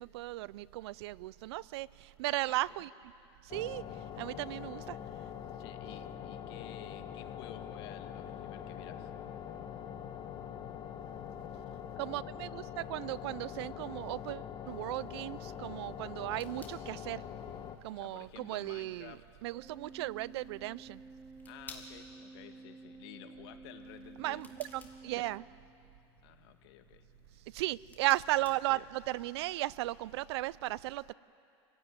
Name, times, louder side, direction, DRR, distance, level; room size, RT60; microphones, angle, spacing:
voice 1, 0.0-2.9 3.5-3.8 4.2-5.0 12.0-17.2 17.8-19.2 19.4-21.0 24.2-25.4 27.5-31.1, right 18 dB, 70° right, 21 dB, 0.5 m, -36 dB
voice 2, 2.5-2.8 5.6-9.1 17.9-19.2 21.5-24.7 26.2-27.0, left 12 dB, 70° left, 7 dB, 1.9 m, -52 dB
sound 1, 3.5-17.8, left 9 dB, 30° left, 1.4 m, -44 dB
sound 2, 15.8-29.3, left 3 dB, 10° left, 2.9 m, -58 dB
Organ, 19.5-26.1, right 4 dB, 10° right, 0.6 m, -52 dB
29.0 x 16.5 x 9.6 m, 2.6 s
supercardioid pair, 125°, 14 cm